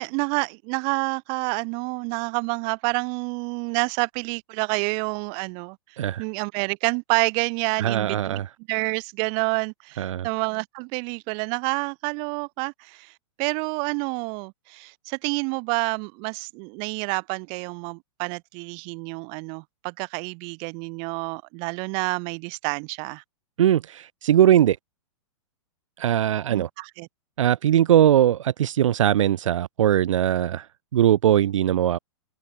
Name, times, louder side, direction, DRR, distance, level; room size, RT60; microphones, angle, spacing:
voice 1, 0.0-5.8 6.2-8.4 8.7-13.1 13.4-23.2 26.5-27.1, right 38 dB, 35° right, 1.6 m, -28 dB
voice 2, 7.8-8.5 10.0-10.3 23.6-24.8 26.0-26.7 27.4-30.7 30.9-32.0, right 11 dB, 80° right, 0.7 m, -20 dB
hypercardioid pair, 160°, 16 cm